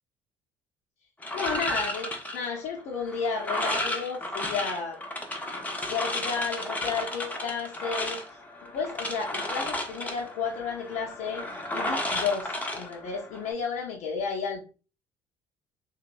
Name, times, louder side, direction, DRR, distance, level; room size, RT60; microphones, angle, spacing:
sound 1, 1.2-13.5, left 1 dB, 10° left, 0.6 m, -33 dB
voice 1, 1.3-5.0 5.9-14.7, left 5 dB, 60° left, -1 dB, 0.5 m, -32 dB
2.7 x 2.0 x 2.5 m, 0.35 s
hypercardioid pair, 60°, 14 cm